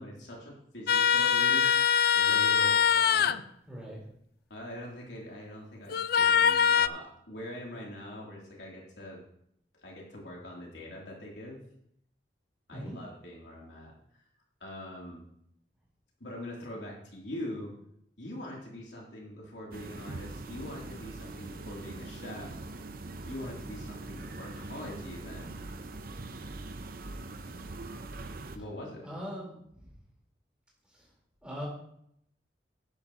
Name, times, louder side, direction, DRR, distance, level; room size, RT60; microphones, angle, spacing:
voice 1, 0.0-1.7 2.1-3.4 4.5-9.2 9.8-11.6 12.7-13.9 14.6-15.2 16.2-17.7 18.2-22.5 23.2-25.6 28.5-29.0, left 1 dB, 75° left, -3 dB, 3.2 m, -43 dB
sound 1, 0.9-3.4 5.9-6.9, left 7 dB, 55° left, 0.4 m, -23 dB
voice 2, 3.7-4.0 12.7-12.9 29.0-29.9 30.9-31.1 31.4-31.7, equal, 5° right, -4 dB, 4.2 m, -41 dB
sound 2, 19.7-28.6, right 2 dB, 55° right, 0.7 m, -42 dB
11.5 x 10.0 x 3.0 m, 0.71 s
head